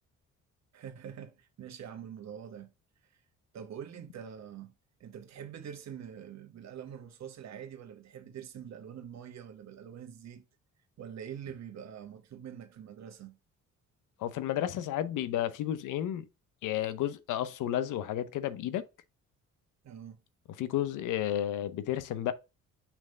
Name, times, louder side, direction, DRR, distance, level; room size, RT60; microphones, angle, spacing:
voice 1, 0.7-2.7 3.5-4.7 5.0-10.4 11.0-13.4 19.8-20.2, right 8 dB, 60° right, 1.3 m, -45 dB
voice 2, 14.2-16.3 16.6-18.8 20.6-22.3, left 12 dB, 85° left, 0.7 m, -32 dB
6.0 x 3.3 x 5.0 m
cardioid pair, 90°, 30 cm